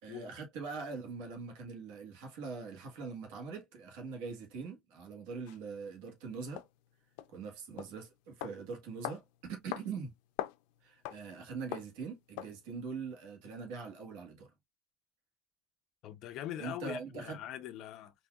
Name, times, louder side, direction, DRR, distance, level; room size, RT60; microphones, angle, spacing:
voice 1, 0.0-6.6 7.3-10.1 10.8-14.5 16.6-17.4, right 5 dB, 80° right, 1.5 m, -42 dB
sound 1, 5.5-5.6 6.6-6.7 7.2-7.3 7.8-7.9 8.4-8.6 9.0-9.2 9.7-9.9 10.2-10.6 11.0-11.2 11.7-11.9 12.4-12.6, left 14 dB, 90° left, 0.4 m, -40 dB
voice 2, 16.0-18.1, left 11 dB, 55° left, 0.7 m, -42 dB
4.1 x 2.7 x 2.3 m
cardioid pair, 145°, 0 cm